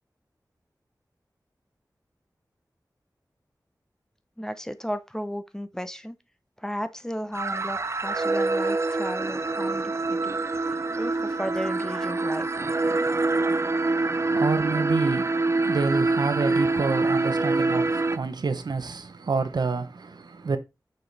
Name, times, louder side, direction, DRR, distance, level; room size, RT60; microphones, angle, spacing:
voice 1, 4.4-6.2 6.6-10.4 11.0-12.5, equal, 10° left, 0.7 m, -34 dB
sound 1, 7.3-18.2, right 3 dB, 40° right, 0.6 m, -25 dB
voice 2, 13.8-20.6, right 4 dB, 90° right, 0.9 m, -28 dB
6.3 x 5.0 x 4.1 m
wide cardioid pair, 85°, 7 cm